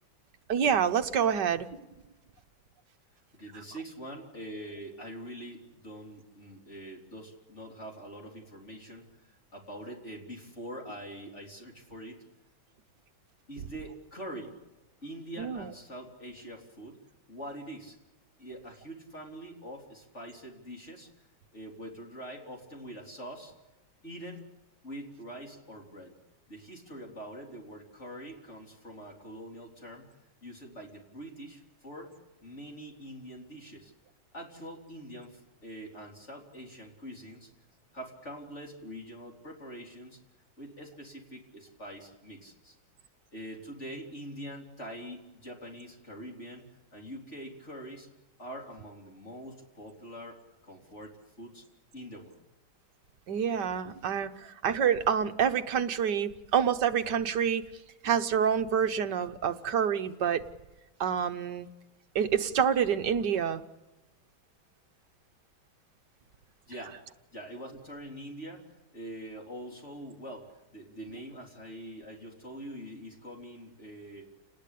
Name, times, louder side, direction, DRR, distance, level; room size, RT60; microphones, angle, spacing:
voice 1, 0.5-1.7 15.4-15.7 53.3-57.6 58.0-60.4 61.0-61.7 62.1-63.6, right 8 dB, 60° right, 8 dB, 1.5 m, -27 dB
voice 2, 3.3-12.2 13.5-14.6 15.0-18.0 18.4-21.1 21.5-23.5 24.0-24.4 24.8-26.1 26.5-32.2 32.4-33.9 34.3-37.5 37.9-40.2 40.6-42.8 43.3-48.1 48.4-51.7 51.9-52.4 54.2-54.5 66.7-67.0 67.3-74.3, equal, 35° left, 0 dB, 4.0 m, -44 dB
29.5 x 20.0 x 8.4 m, 1.1 s
omnidirectional pair, 2.2 m